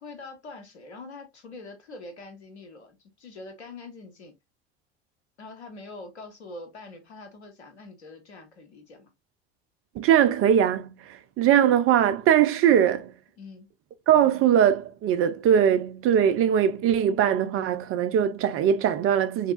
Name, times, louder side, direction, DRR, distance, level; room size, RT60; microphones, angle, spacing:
voice 1, 0.0-4.3 5.4-9.1 13.4-13.7, left 3 dB, 85° left, 1.2 m, -44 dB
voice 2, 10.0-13.1 14.1-19.5, right 9 dB, 40° right, 0.6 m, -21 dB
3.5 x 3.3 x 2.4 m
figure-of-eight pair, 65°, 32 cm